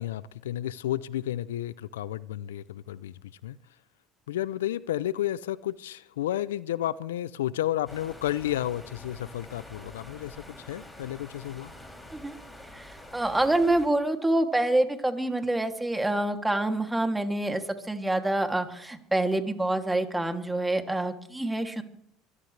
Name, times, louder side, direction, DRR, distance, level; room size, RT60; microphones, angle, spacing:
voice 1, 0.0-3.1 3.4-3.6 4.3-11.7, left 13 dB, 85° left, 0.5 m, -32 dB
sound 1, 7.9-13.9, left 1 dB, 10° left, 6.6 m, -47 dB
voice 2, 12.7-17.6 17.9-21.8, right 1 dB, 10° right, 2.7 m, -26 dB
24.5 x 15.0 x 3.3 m
hypercardioid pair, 75°, 0 cm